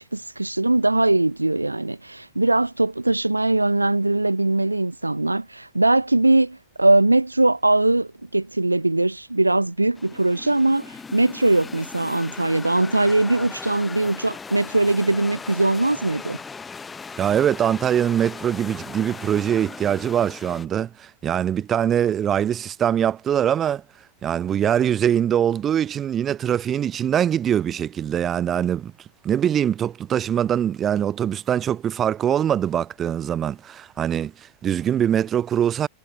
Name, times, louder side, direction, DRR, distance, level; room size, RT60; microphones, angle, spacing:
voice 1, 0.0-16.4, right 2 dB, 85° right, 1.1 m, -21 dB
sound 1, 10.0-20.7, left 5 dB, 15° left, 6.0 m, -38 dB
voice 2, 17.2-23.8 24.2-28.9 29.2-35.9, right 9 dB, 25° right, 3.0 m, -23 dB
figure-of-eight pair, 90°, 0 cm